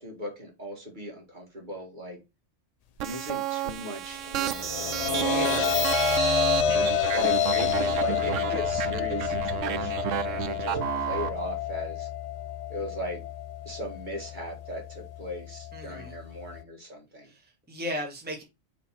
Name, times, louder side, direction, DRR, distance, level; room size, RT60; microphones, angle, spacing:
voice 1, 0.0-2.2 3.0-5.5 7.1-12.1 12.7-13.2 13.7-17.3, equal, 40° right, 2.0 m, -38 dB
sound 1, 3.0-11.3, right 11 dB, 85° right, 1.0 m, -31 dB
sound 2, 4.3-16.6, left 8 dB, 75° left, 0.3 m, -29 dB
voice 2, 5.3-5.8 15.7-16.2 17.2-18.4, equal, 10° right, 1.4 m, -36 dB
4.6 x 4.0 x 5.6 m
omnidirectional pair, 1.3 m